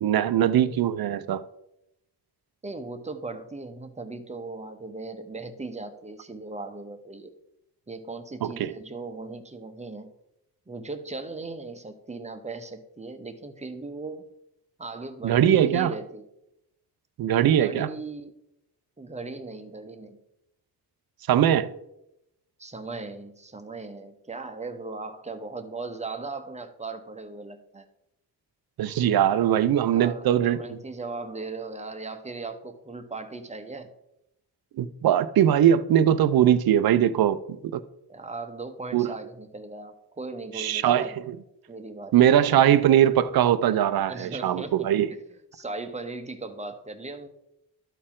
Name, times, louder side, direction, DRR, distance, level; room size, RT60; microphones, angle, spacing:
voice 1, 0.0-1.4 8.4-8.7 15.2-15.9 17.2-17.9 21.3-21.7 28.8-30.6 34.8-37.8 38.9-39.1 40.5-41.1 42.1-45.1, right 10 dB, 60° right, 0.6 m, -21 dB
voice 2, 2.6-7.3 7.9-10.1 10.7-14.3 14.8-16.2 17.4-18.3 19.0-20.2 22.6-27.8 29.9-33.9 38.1-41.2 41.7-42.2 44.1-45.2 45.5-47.3, right 3 dB, 15° right, 0.8 m, -38 dB
12.5 x 4.4 x 3.7 m
cardioid pair, 85°, 40 cm